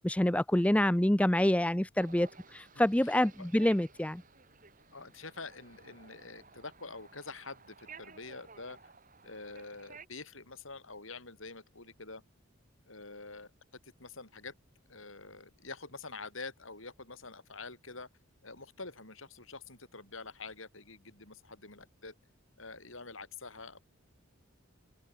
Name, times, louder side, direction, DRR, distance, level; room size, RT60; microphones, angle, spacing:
voice 1, 0.0-4.2, left 1 dB, 5° left, 0.5 m, -27 dB
sound 1, 2.0-10.1, right 5 dB, 40° right, 5.4 m, -55 dB
voice 2, 2.7-3.5 4.9-8.9 9.2-12.2 12.9-13.5 13.8-14.5 14.9-18.1 18.4-22.1 22.6-23.8, left 3 dB, 75° left, 6.7 m, -46 dB
open air
head